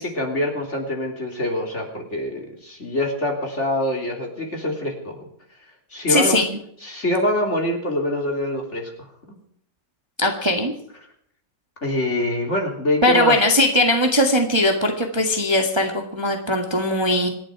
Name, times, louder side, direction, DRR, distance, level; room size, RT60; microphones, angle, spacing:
voice 1, 0.0-5.3 5.9-6.4 6.8-9.4 11.8-13.4, left 1 dB, 35° left, 1 dB, 3.6 m, -25 dB
voice 2, 6.1-6.5 10.2-10.7 13.0-17.3, left 1 dB, 15° right, 3 dB, 1.8 m, -19 dB
26.5 x 11.0 x 4.9 m, 0.67 s
omnidirectional pair, 2.0 m